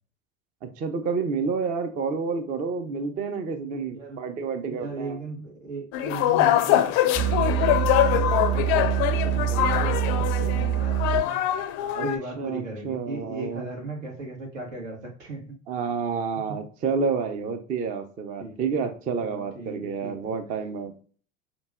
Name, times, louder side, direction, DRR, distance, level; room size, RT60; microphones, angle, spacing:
voice 1, 0.6-5.2 11.9-12.1 12.4-13.7 15.7-20.9, right 5 dB, 20° right, 0.4 m, -29 dB
voice 2, 4.6-11.4 12.0-15.6 16.5-16.6 18.4-18.6 19.2-20.3, right 2 dB, 75° right, 1.5 m, -37 dB
sound 1, 5.9-12.2, left 12 dB, 40° left, 0.4 m, -23 dB
sound 2, 7.1-11.2, right 10 dB, 40° right, 1.6 m, -25 dB
5.2 x 2.2 x 2.3 m
hypercardioid pair, 80°, 39 cm